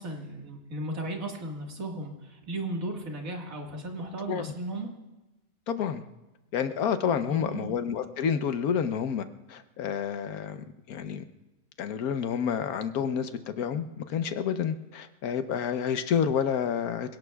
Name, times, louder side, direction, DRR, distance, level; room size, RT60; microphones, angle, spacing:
voice 1, 0.0-4.9 7.3-7.8, right 1 dB, 65° right, 1 dB, 2.2 m, -35 dB
voice 2, 5.7-6.1 6.5-11.2 11.8-13.3 13.6-17.2, left 7 dB, 75° left, 10 dB, 1.3 m, -29 dB
27.0 x 17.5 x 2.3 m, 1.0 s
omnidirectional pair, 1.6 m